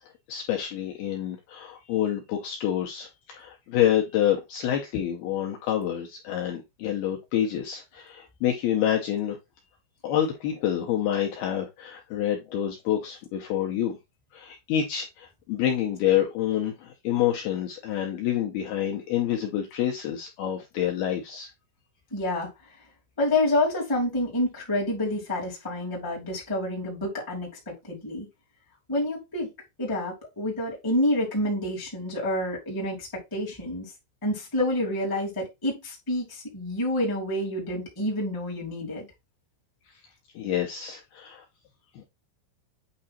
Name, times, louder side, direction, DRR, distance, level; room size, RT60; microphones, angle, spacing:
voice 1, 0.3-9.4 10.0-14.0 14.3-21.5 40.4-41.4 42.0-42.1, left 10 dB, 80° left, 1 dB, 2.4 m, -27 dB
voice 2, 22.1-22.5 23.2-28.3 28.9-29.5 29.8-33.9 34.2-39.1, left 1 dB, 5° left, -4 dB, 1.7 m, -28 dB
8.8 x 3.0 x 4.2 m, 0.22 s
omnidirectional pair, 5.4 m